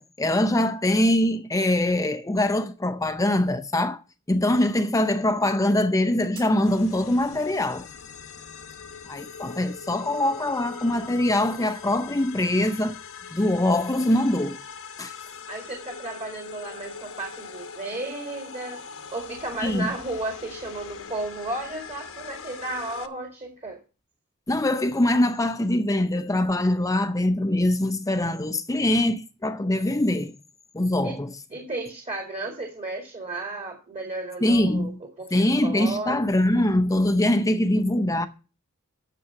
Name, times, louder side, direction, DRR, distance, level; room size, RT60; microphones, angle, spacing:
voice 1, 0.0-4.0 4.3-7.9 9.1-13.0 13.3-14.6 15.0-15.2 19.6-19.9 24.5-30.3 30.7-31.3 34.4-35.0 35.3-38.3, left 1 dB, 15° left, 0.6 m, -23 dB
sound 1, 6.3-7.4, right 5 dB, 90° right, 3.5 m, -48 dB
sound 2, 6.6-23.1, left 6 dB, 65° left, 1.1 m, -41 dB
voice 2, 15.5-18.8 19.1-23.8 31.0-31.1 31.5-36.2, right 2 dB, 30° right, 2.1 m, -34 dB
9.6 x 6.8 x 6.0 m
head